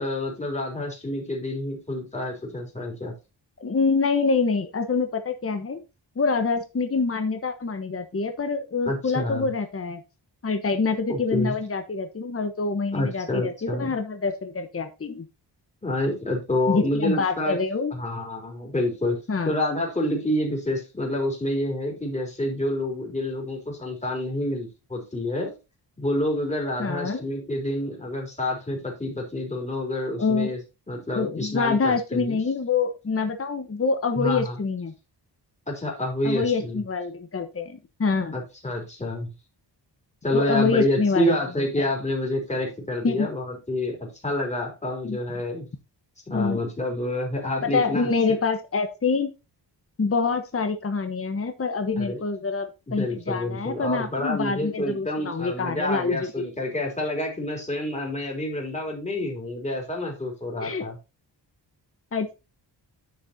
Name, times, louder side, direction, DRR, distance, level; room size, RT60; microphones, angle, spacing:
voice 1, 0.0-3.1 8.9-9.5 11.1-11.5 12.9-13.9 15.8-17.6 17.9-19.2 19.5-25.5 26.0-30.6 30.9-32.4 34.1-34.6 35.7-36.8 38.3-39.3 40.2-45.7 46.3-48.4 52.0-52.2 52.9-61.0, left 1 dB, 15° left, 0 dB, 3.5 m, -28 dB
voice 2, 3.6-5.8 6.2-10.0 10.4-15.3 16.7-17.9 19.3-19.5 26.8-27.2 30.2-30.5 31.1-34.9 36.2-38.4 40.3-41.4 41.8-41.9 43.0-43.3 45.0-45.2 46.3-46.6 47.6-49.3 50.0-56.2 60.6-60.9 62.1-62.3, left 4 dB, 30° left, 7 dB, 1.1 m, -26 dB
10.0 x 6.5 x 2.8 m, 0.27 s
wide cardioid pair, 110°, 43 cm